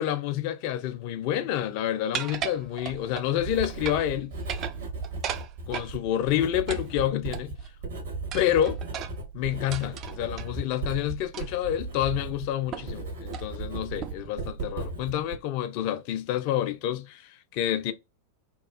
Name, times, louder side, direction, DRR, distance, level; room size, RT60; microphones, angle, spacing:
voice 1, 0.0-4.4 5.7-7.6 8.3-8.8 9.3-17.9, left 11 dB, 45° left, 0.4 m, -28 dB
sound 1, 2.1-3.3 3.6-4.1 4.4-5.9 6.7-7.7 8.3-10.5 11.3-11.6 12.0-12.1 12.7-13.0 13.3-13.5 14.0-14.3, right 9 dB, 35° right, 0.3 m, -36 dB
Writing, 2.6-15.3, right 3 dB, 65° right, 1.3 m, -37 dB
2.9 x 2.3 x 2.4 m
figure-of-eight pair, 90°, 0 cm